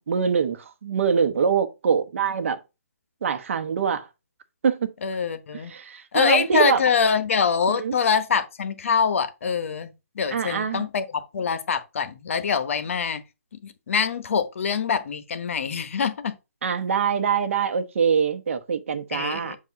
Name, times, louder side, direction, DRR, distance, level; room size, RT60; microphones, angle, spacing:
voice 1, 0.0-2.6 3.2-4.1 4.6-4.9 5.7-6.8 7.7-7.9 10.3-10.9 16.6-19.6, right 6 dB, 50° right, 1.0 m, -24 dB
voice 2, 5.0-5.7 6.1-9.9 10.1-13.2 13.6-16.4 19.1-19.6, left 6 dB, 55° left, 1.0 m, -24 dB
7.8 x 2.6 x 5.8 m
hypercardioid pair, 155°, 9 cm